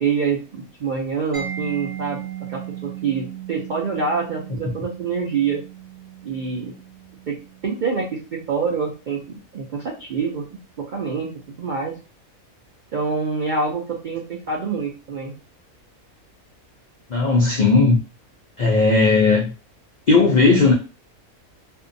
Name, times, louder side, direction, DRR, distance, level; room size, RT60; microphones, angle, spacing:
voice 1, 0.0-5.6 6.2-6.7 7.3-7.4 7.6-11.3 11.6-12.0 12.9-15.3, right 5 dB, 75° right, 0.4 m, -26 dB
Mallet percussion, 1.3-8.9, right 10 dB, 20° right, 0.7 m, -37 dB
voice 2, 17.1-18.0 18.6-19.5 20.1-20.7, left 3 dB, 80° left, 0.4 m, -16 dB
2.6 x 2.2 x 2.5 m
omnidirectional pair, 1.5 m